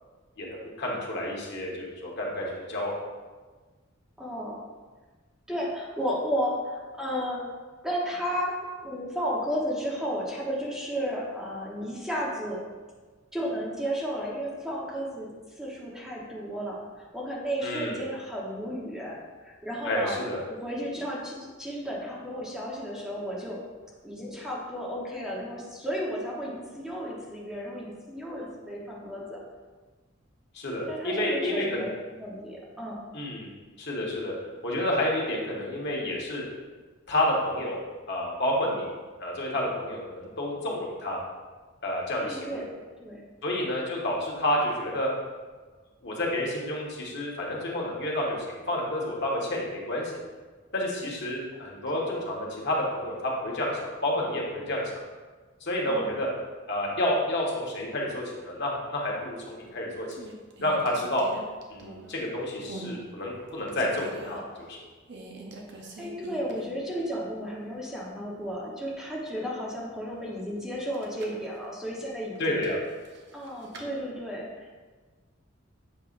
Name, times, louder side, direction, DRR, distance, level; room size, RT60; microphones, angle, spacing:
voice 1, 0.4-3.1 17.6-18.0 19.8-20.4 30.5-31.9 33.1-33.5 33.8-34.3 34.6-36.4 37.1-37.8 38.1-38.9 39.2-41.2 41.8-42.7 43.4-45.1 46.0-50.1 50.7-55.0 55.6-56.3 56.7-60.2 60.6-61.2 61.7-64.8 72.4-72.8, left 1 dB, 60° left, -3 dB, 1.4 m, -29 dB
voice 2, 4.2-4.6 5.5-7.4 7.8-8.6 8.8-12.6 13.3-20.2 20.5-23.6 24.0-29.4 30.9-31.9 32.2-33.0 42.2-42.6 43.0-43.2 51.9-52.0 55.8-56.1 66.0-72.5 73.3-74.7, equal, 5° right, -5 dB, 1.0 m, -33 dB
sound 1, 59.3-59.7 60.1-62.2 62.7-63.0 63.4-64.4 65.1-66.9 67.2-67.3 70.8-71.4 72.3-73.9, right 2 dB, 60° right, 0.8 m, -44 dB
7.7 x 5.5 x 2.6 m, 1.4 s
head